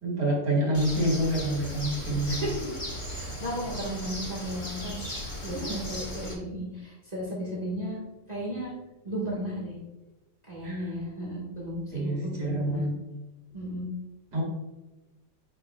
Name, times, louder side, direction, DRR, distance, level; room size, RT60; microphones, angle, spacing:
voice 1, 0.0-2.4 5.5-5.8 10.6-10.9 11.9-12.9 14.3-14.4, right 1 dB, 65° right, -4 dB, 2.9 m, -27 dB
Bird, 0.7-6.3, equal, 20° left, 1.1 m, -37 dB
voice 2, 3.1-5.0 5.4-8.0 8.3-8.7 9.0-9.7 10.5-12.8 13.5-13.9, equal, 25° right, -5 dB, 1.7 m, -34 dB
8.8 x 5.3 x 2.4 m, 1.0 s
omnidirectional pair, 1.9 m